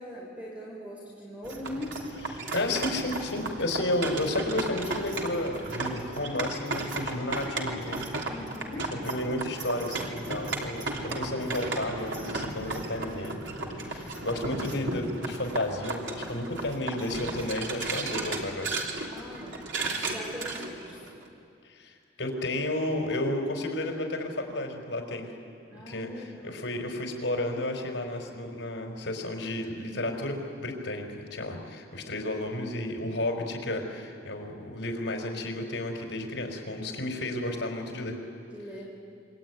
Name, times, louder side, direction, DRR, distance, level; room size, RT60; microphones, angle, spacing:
voice 1, 0.0-2.0 8.3-8.9 19.0-19.5 19.9-21.0 25.7-26.5 38.5-38.8, left 1 dB, 10° right, -4 dB, 4.9 m, -41 dB
sound 1, 1.4-21.2, right 2 dB, 85° right, 3.3 m, -35 dB
voice 2, 2.5-8.0 9.0-18.8 21.7-25.3 25.9-38.2, left 1 dB, 80° left, 3 dB, 4.9 m, -32 dB
26.5 x 23.5 x 9.6 m, 2.4 s
head